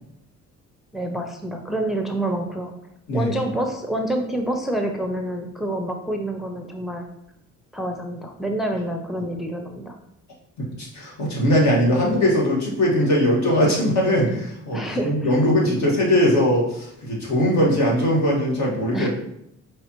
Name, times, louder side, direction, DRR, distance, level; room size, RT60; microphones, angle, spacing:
voice 1, 0.9-2.7 3.1-7.1 7.7-10.0 14.7-15.4 16.0-16.2 18.9-19.1, right 1 dB, ahead, 4 dB, 0.5 m, -27 dB
voice 2, 10.6-19.1, equal, 65° left, -3 dB, 1.7 m, -20 dB
5.4 x 3.4 x 2.9 m, 0.77 s
cardioid pair, 90°, 30 cm